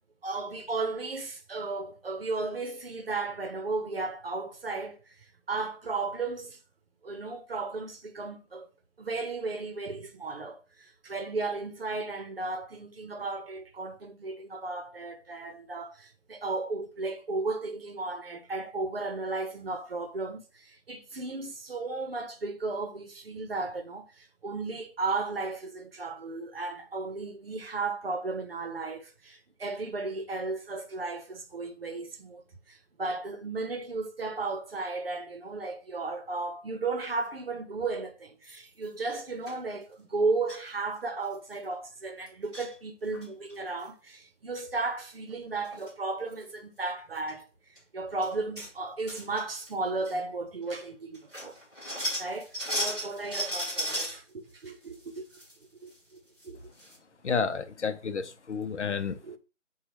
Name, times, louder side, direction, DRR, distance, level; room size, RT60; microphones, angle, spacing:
voice 1, 0.2-5.0 5.5-6.6 7.0-8.7 9.0-47.5 47.9-51.5 52.2-55.2 55.8-56.6 59.2-59.4, right 3 dB, 50° right, 0.8 m, -34 dB
sound 1, 38.4-38.8 39.4-39.6 40.5-40.7 41.0-41.1 41.3-41.6 42.2-42.7 43.1-43.5 45.3-45.4 45.7-45.9 46.3-46.4 47.2-47.3 47.7-47.8 48.2-48.7 49.1-49.7 50.0-50.1 50.7-50.8 51.1-54.2 54.6-55.5 55.9-56.0 56.4-56.5 56.8-56.9, equal, 5° left, 0.8 m, -35 dB
voice 2, 57.2-59.2, left 5 dB, 65° left, 0.7 m, -30 dB
6.8 x 2.4 x 2.9 m
figure-of-eight pair, 165°, 38 cm